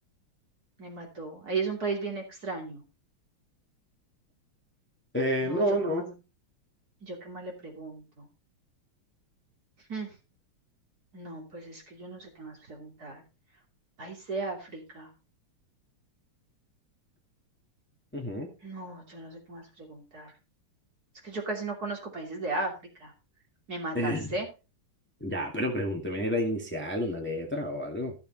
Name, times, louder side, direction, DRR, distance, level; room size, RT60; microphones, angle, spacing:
voice 1, 0.8-2.8 5.4-6.1 7.0-8.3 9.9-10.1 11.1-13.2 14.0-15.1 18.6-20.3 21.2-22.7 23.0-23.1 23.7-24.5, right 3 dB, 45° right, 1 dB, 3.4 m, -36 dB
voice 2, 5.1-6.0 18.1-18.5 23.9-24.4 25.2-28.1, equal, 5° left, 0 dB, 2.0 m, -29 dB
14.0 x 7.2 x 4.1 m, 0.30 s
omnidirectional pair, 2.4 m